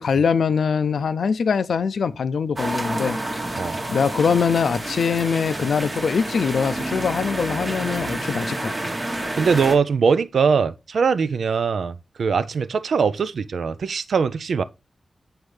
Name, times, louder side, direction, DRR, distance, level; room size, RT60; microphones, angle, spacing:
voice 1, 0.0-3.2 3.5-3.6 3.9-8.7, left 6 dB, 90° left, 0.4 m, -22 dB
sound 1, 2.6-9.8, right 1 dB, 35° right, 1.1 m, -29 dB
voice 2, 9.3-14.6, right 5 dB, 85° right, 0.4 m, -21 dB
8.0 x 4.3 x 3.2 m
wide cardioid pair, 85°, 0 cm